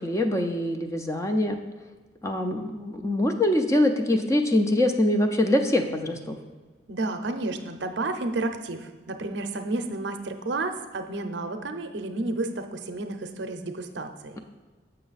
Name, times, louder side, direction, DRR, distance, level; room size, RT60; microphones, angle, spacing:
voice 1, 0.0-1.6 2.2-6.4, left 1 dB, 15° left, 5 dB, 0.4 m, -24 dB
voice 2, 6.9-14.4, right 2 dB, 65° right, 7 dB, 0.6 m, -31 dB
6.7 x 6.2 x 4.0 m, 1.4 s
head